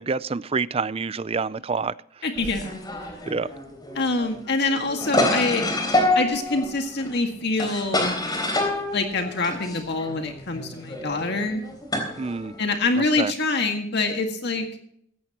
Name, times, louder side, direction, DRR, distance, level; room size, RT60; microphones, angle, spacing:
voice 1, 0.0-2.2 3.3-3.5 12.2-12.6 13.0-13.3, right 4 dB, 30° right, 18 dB, 0.4 m, -28 dB
voice 2, 2.2-3.2 4.0-5.7 6.2-8.1 8.9-11.6 12.6-14.7, left 3 dB, 55° left, 4 dB, 1.9 m, -25 dB
sound 1, 2.4-12.7, left 1 dB, 20° left, 3.6 m, -27 dB
17.0 x 15.0 x 3.0 m, 0.66 s
head